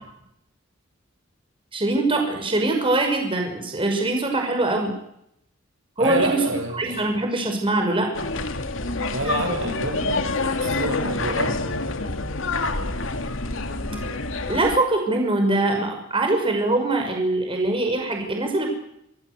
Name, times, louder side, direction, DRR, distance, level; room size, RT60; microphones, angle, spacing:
voice 1, 1.7-4.9 6.0-6.4 6.7-8.1 14.5-18.7, right 2 dB, 25° right, 3 dB, 5.9 m, -23 dB
voice 2, 6.0-7.0 9.1-11.8, right 2 dB, 70° right, 5 dB, 7.4 m, -28 dB
sound 1, 8.1-14.8, left 3 dB, 70° left, 2.6 m, -27 dB
28.0 x 19.5 x 8.3 m, 0.76 s
head